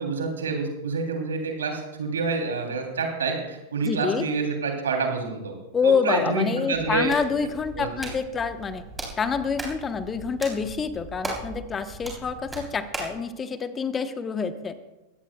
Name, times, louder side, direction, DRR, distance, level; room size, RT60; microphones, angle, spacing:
voice 1, 0.0-5.5 5.8-7.1 7.7-7.9, right 4 dB, 65° right, 2 dB, 3.2 m, -27 dB
voice 2, 3.8-4.3 5.7-8.8 9.2-14.7, left 5 dB, 20° left, 11 dB, 1.1 m, -27 dB
Hands, 6.7-13.2, right 2 dB, 10° right, 3.6 m, -38 dB
23.0 x 17.0 x 2.3 m, 1.0 s
figure-of-eight pair, 90°, 0 cm